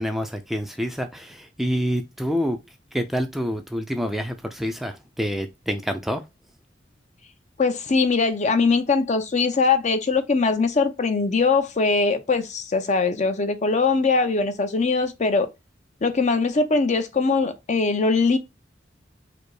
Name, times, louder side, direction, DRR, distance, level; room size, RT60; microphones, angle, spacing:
voice 1, 0.0-2.6 2.9-6.2, equal, ahead, 0.4 m, -27 dB
voice 2, 7.6-15.5 16.0-18.4, left 4 dB, 40° left, 0.6 m, -21 dB
5.1 x 2.0 x 4.6 m
head